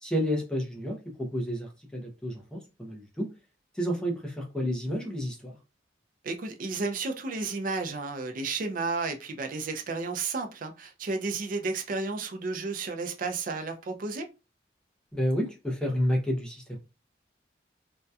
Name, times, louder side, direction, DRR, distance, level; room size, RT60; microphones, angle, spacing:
voice 1, 0.0-3.3 3.7-5.6 15.1-16.8, equal, 5° left, 0.5 m, -30 dB
voice 2, 6.2-14.3, right 3 dB, 50° right, 0.4 m, -32 dB
2.6 x 2.2 x 2.2 m
head